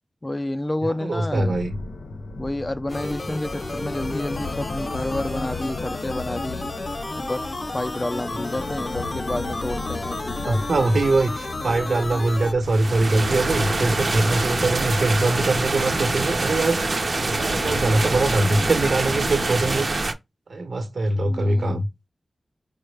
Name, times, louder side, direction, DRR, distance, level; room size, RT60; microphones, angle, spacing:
voice 1, 0.2-1.5 2.4-6.7 7.2-7.4 7.7-11.0 21.2-21.8, left 1 dB, 25° left, 0.3 m, -30 dB
voice 2, 0.8-1.7 10.5-16.8 17.3-19.9 20.5-21.9, right 2 dB, 75° right, 0.9 m, -22 dB
sound 1, 1.3-19.8, left 3 dB, 90° left, 0.5 m, -35 dB
sound 2, 2.9-12.5, left 2 dB, 40° left, 0.7 m, -32 dB
sound 3, 12.6-20.1, right 3 dB, 55° right, 0.6 m, -25 dB
4.7 x 2.1 x 3.2 m
wide cardioid pair, 95°, 0 cm